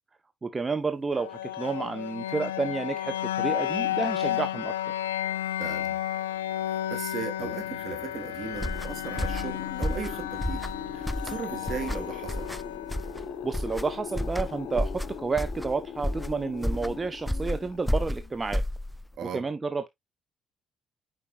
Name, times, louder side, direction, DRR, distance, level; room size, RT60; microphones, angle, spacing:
voice 1, 0.4-4.7 13.4-18.6 19.3-19.9, right 4 dB, 30° right, 0.9 m, -30 dB
sound 1, 1.1-15.1, left 12 dB, 90° left, 0.3 m, -33 dB
voice 2, 5.6-6.0 6.6-10.7 10.9-12.5 19.2-19.4, right 6 dB, 60° right, 2.3 m, -37 dB
sound 2, 7.2-18.3, left 8 dB, 65° left, 0.7 m, -41 dB
sound 3, 8.5-19.2, left 1 dB, 5° left, 0.4 m, -32 dB
8.5 x 5.0 x 2.4 m
hypercardioid pair, 50°, 0 cm